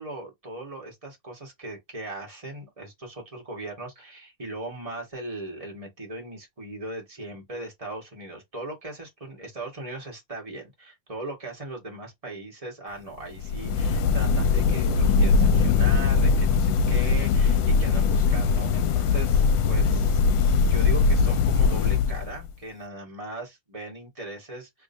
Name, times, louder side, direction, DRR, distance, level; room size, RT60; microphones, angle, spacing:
voice 1, 0.0-20.2 20.5-24.8, right 2 dB, 20° right, 1.5 m, -38 dB
sound 1, 13.3-22.5, left 5 dB, 80° left, 1.3 m, -21 dB
3.6 x 3.3 x 2.7 m
omnidirectional pair, 2.1 m